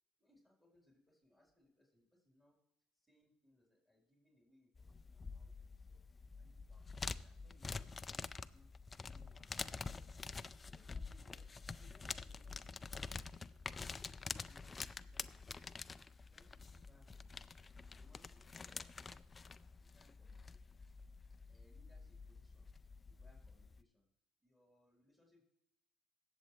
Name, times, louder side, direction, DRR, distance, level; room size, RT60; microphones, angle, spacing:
voice 1, 0.2-2.6 2.9-8.7 9.0-10.1 10.6-13.7 14.1-15.8 16.3-19.5 19.8-20.8 21.4-24.1 24.4-25.4, left 1 dB, ahead, -1 dB, 3.9 m, -71 dB
sound 1, 4.8-23.8, left 4 dB, 25° left, 0.4 m, -48 dB
17.5 x 7.4 x 3.2 m, 0.81 s
supercardioid pair, 80°, 0 cm